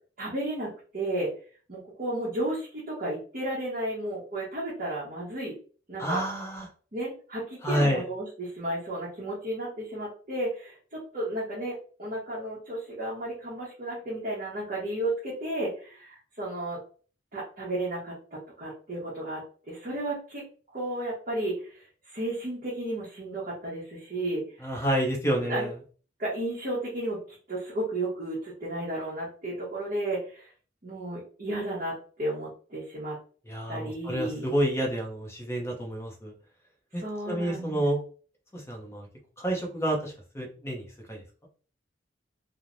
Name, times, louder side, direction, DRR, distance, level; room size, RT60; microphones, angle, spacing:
voice 1, 0.2-1.3 1.7-5.5 5.9-6.2 6.9-16.8 17.3-19.4 19.7-20.4 20.7-24.9 25.4-25.7 26.2-27.2 27.5-30.5 30.8-33.2 33.7-34.5 36.9-37.8, right 1 dB, 45° right, -8 dB, 1.0 m, -33 dB
voice 2, 6.0-6.7 7.6-8.0 24.6-25.7 33.5-36.3 36.9-38.0 38.5-39.1 39.4-41.2, equal, 15° left, 0 dB, 0.6 m, -29 dB
3.1 x 2.0 x 2.5 m, 0.40 s
head